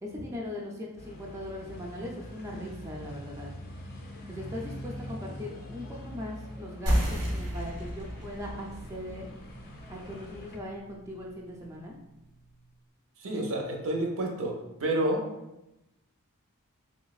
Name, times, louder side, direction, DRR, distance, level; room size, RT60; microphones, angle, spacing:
voice 1, 0.0-3.5 4.3-9.3 9.9-11.9, left 1 dB, 15° right, -2 dB, 0.4 m, -39 dB
sound 1, 1.0-10.6, equal, 45° left, 0.5 m, -44 dB
sound 2, 6.9-12.0, equal, 90° right, 0.9 m, -33 dB
voice 2, 13.2-14.5 14.8-15.3, right 1 dB, 65° right, 1 dB, 0.6 m, -29 dB
3.3 x 3.0 x 2.3 m, 0.92 s
head